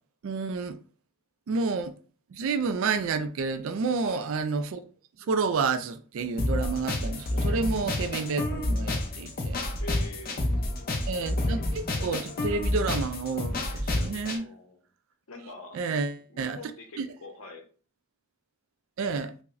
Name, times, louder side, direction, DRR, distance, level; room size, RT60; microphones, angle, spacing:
voice 1, 0.2-0.8 1.5-1.9 2.3-4.8 5.3-9.6 11.1-14.5 15.7-16.6 17.0-17.1 19.0-19.3, right 4 dB, 60° right, 0.3 m, -30 dB
voice 2, 3.9-4.3 9.8-11.3 14.4-14.9 15.3-15.8 16.3-17.7, left 2 dB, 70° left, 0.8 m, -45 dB
sound 1, 6.4-14.4, left 1 dB, 45° left, 0.6 m, -29 dB
4.7 x 2.1 x 2.5 m
head